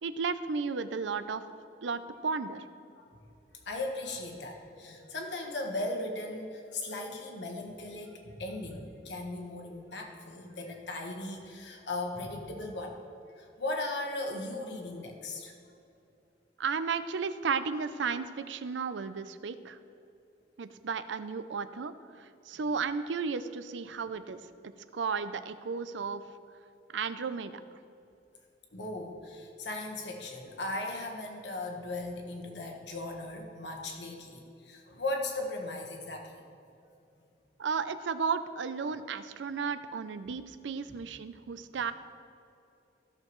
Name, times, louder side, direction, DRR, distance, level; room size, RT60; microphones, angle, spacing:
voice 1, 0.0-1.4 1.8-2.6 16.6-19.8 20.6-24.4 24.9-26.2 26.9-27.6 37.6-41.9, right 5 dB, 80° right, 12 dB, 0.5 m, -34 dB
voice 2, 3.6-13.0 13.4-15.5 28.7-36.4 40.9-41.0, left 2 dB, 70° left, 2 dB, 1.3 m, -37 dB
15.5 x 6.6 x 3.1 m, 2.6 s
head